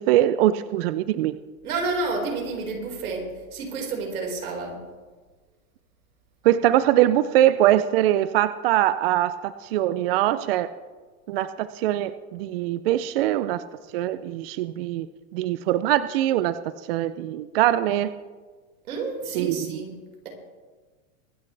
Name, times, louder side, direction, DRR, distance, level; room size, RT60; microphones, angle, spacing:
voice 1, 0.0-1.4 6.4-10.7 11.3-13.6 13.9-15.1 15.3-16.6 16.9-18.1 19.3-19.8, right 13 dB, 45° right, 13 dB, 0.5 m, -22 dB
voice 2, 1.6-3.2 3.5-4.8 18.9-19.9, right 3 dB, 90° right, 0 dB, 4.9 m, -29 dB
24.0 x 11.0 x 3.3 m, 1.4 s
supercardioid pair, 160°, 42 cm